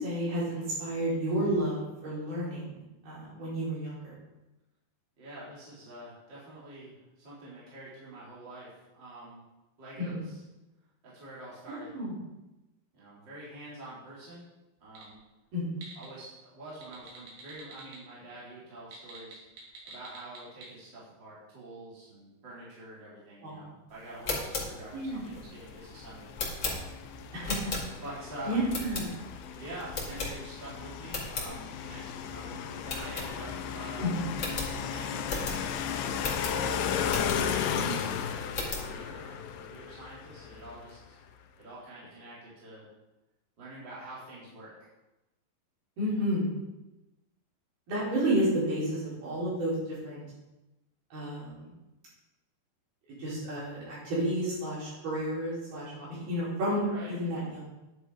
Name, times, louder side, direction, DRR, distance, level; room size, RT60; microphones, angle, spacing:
voice 1, 0.0-2.8 3.0-4.1 10.0-10.2 11.7-12.2 15.5-15.8 23.4-23.6 24.9-25.2 27.3-27.6 28.4-29.1 34.0-34.4 37.3-37.9 46.0-46.5 47.9-50.2 51.1-51.7 53.2-57.6, right 1 dB, 55° right, -8 dB, 6.6 m, -31 dB
voice 2, 5.2-9.4 9.8-10.4 11.0-12.0 12.9-14.4 14.8-15.2 15.9-19.4 19.8-26.3 28.0-28.6 29.6-34.1 34.4-35.2 35.5-36.0 36.9-41.2 41.6-42.9 43.6-44.7 46.1-46.2 56.9-57.2, right 2 dB, 25° right, -8 dB, 3.8 m, -46 dB
sound 1, 14.8-15.1 15.5-16.1 16.7-18.0 18.8-20.7, right 4 dB, 80° right, 4.9 m, -46 dB
sound 2, 24.1-28.2 28.7-29.4 29.9-30.7 31.0-31.5 31.9-32.0 32.3-32.4 32.8-33.8 34.0-34.1 34.3-37.7 38.1-38.9, left 3 dB, 40° left, 1.7 m, -36 dB
sound 3, 24.9-41.1, left 8 dB, 80° left, 2.9 m, -35 dB
10.5 x 10.0 x 4.9 m, 1.0 s
omnidirectional pair, 5.4 m